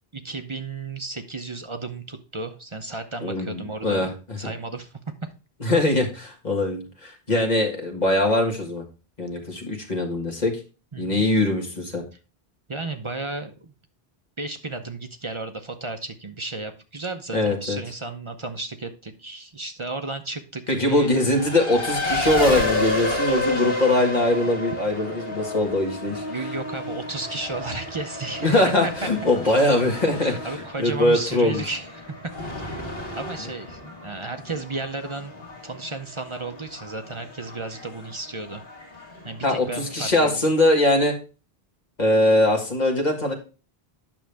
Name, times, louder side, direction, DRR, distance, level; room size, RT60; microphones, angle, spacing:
voice 1, 0.1-5.0 10.9-11.2 12.7-13.7 14.4-21.1 26.3-29.6 30.2-32.6 32.9-35.3 35.6-38.6 39.2-40.4, right 3 dB, 35° right, 6 dB, 0.7 m, -33 dB
voice 2, 3.2-4.5 5.6-8.8 9.2-10.6 11.0-12.0 17.3-17.8 20.7-26.2 28.4-30.5 30.8-31.6 39.4-41.1 42.0-43.3, left 1 dB, 45° left, 2 dB, 1.8 m, -22 dB
Race car auto racing, 20.9-40.1, left 1 dB, 65° left, 2.0 m, -31 dB
8.9 x 6.2 x 3.4 m, 0.32 s
omnidirectional pair, 1.0 m